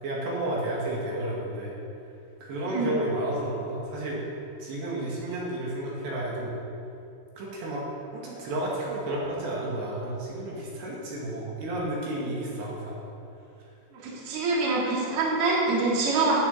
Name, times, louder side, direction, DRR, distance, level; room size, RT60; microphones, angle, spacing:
voice 1, 0.0-1.8 2.4-4.2 4.6-6.5 7.4-7.9 8.1-13.0, right 1 dB, 65° right, -4 dB, 4.2 m, -31 dB
voice 2, 14.0-16.4, right 3 dB, 35° right, -5 dB, 2.8 m, -25 dB
12.5 x 8.4 x 8.4 m, 2.6 s
omnidirectional pair, 5.6 m